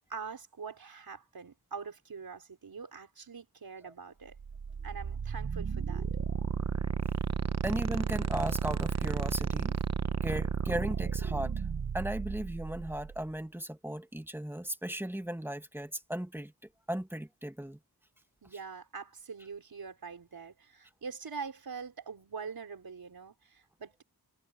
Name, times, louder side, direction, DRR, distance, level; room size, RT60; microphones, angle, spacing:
voice 1, 0.1-4.4 4.8-6.0 18.4-24.0, right 5 dB, 65° right, 4.8 m, -44 dB
sound 1, 4.4-13.2, right 6 dB, 45° right, 0.8 m, -33 dB
voice 2, 7.6-9.7 10.2-11.5 11.9-16.5 16.9-17.8, right 1 dB, 5° right, 1.7 m, -36 dB
wide cardioid pair, 105°, 38 cm